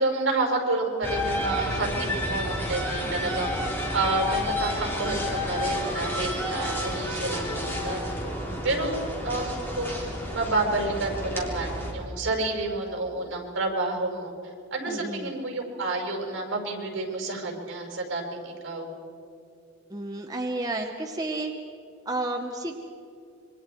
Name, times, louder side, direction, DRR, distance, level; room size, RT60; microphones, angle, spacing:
voice 1, 0.0-3.5 3.9-8.0 8.6-14.3 14.7-18.9, right 2 dB, 65° right, 1 dB, 5.1 m, -29 dB
sound 1, 1.0-11.9, left 1 dB, 10° left, 3.5 m, -30 dB
voice 2, 3.0-3.5 8.5-8.8 14.9-15.3 19.9-21.5 22.0-22.8, right 2 dB, 20° right, 2 dB, 1.0 m, -32 dB
27.0 x 24.0 x 4.6 m, 2.6 s
head